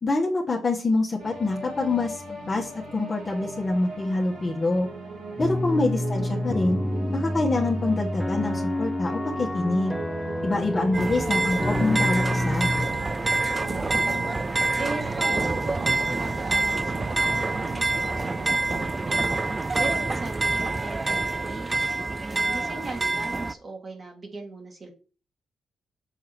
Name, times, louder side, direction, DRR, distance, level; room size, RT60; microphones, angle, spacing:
voice 1, 0.0-4.9 5.4-6.8 7.1-9.9 10.4-12.7, left 2 dB, 40° left, -2 dB, 1.6 m, -26 dB
sound 1, 1.2-18.9, right 3 dB, 80° right, 3.0 m, -39 dB
sound 2, 5.4-12.9, left 1 dB, 5° left, 1.2 m, -28 dB
sound 3, 10.9-23.5, right 3 dB, 30° right, 0.4 m, -26 dB
voice 2, 13.4-19.3 19.8-21.7 22.3-24.9, right 2 dB, 50° right, 1 dB, 2.3 m, -38 dB
7.2 x 3.7 x 4.5 m, 0.37 s
supercardioid pair, 45°, 0 cm